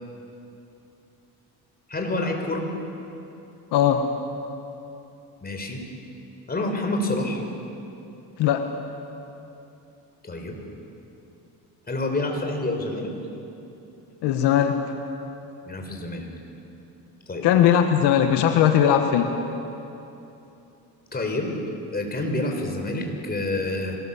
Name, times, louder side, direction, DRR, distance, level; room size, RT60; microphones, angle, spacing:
voice 1, 1.9-2.6 5.4-5.8 6.5-7.4 10.2-10.6 11.9-13.1 15.6-16.2 17.3-17.5 21.1-21.5 21.9-24.0, left 2 dB, 25° left, 2 dB, 4.5 m, -28 dB
voice 2, 3.7-4.1 8.4-8.7 14.2-14.8 17.4-19.3, left 9 dB, 85° left, 6 dB, 1.4 m, -19 dB
25.0 x 18.5 x 7.1 m, 2.9 s
cardioid pair, 95°, 40 cm